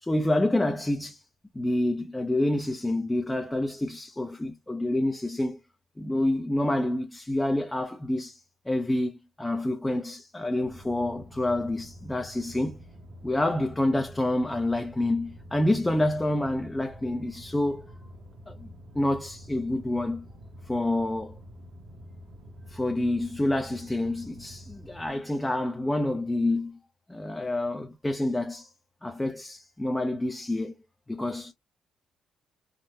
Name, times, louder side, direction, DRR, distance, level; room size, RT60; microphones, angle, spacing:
voice 1, 0.0-1.2 1.5-5.6 6.0-12.8 13.2-17.9 18.5-18.7 18.9-20.3 20.7-21.4 22.7-26.8 27.1-28.7 29.0-30.7 31.1-31.5, left 1 dB, 10° left, 0.5 m, -28 dB
sound 1, 10.6-25.1, equal, 60° right, 0.9 m, -47 dB
3.6 x 2.1 x 2.7 m
cardioid pair, 90°, 0 cm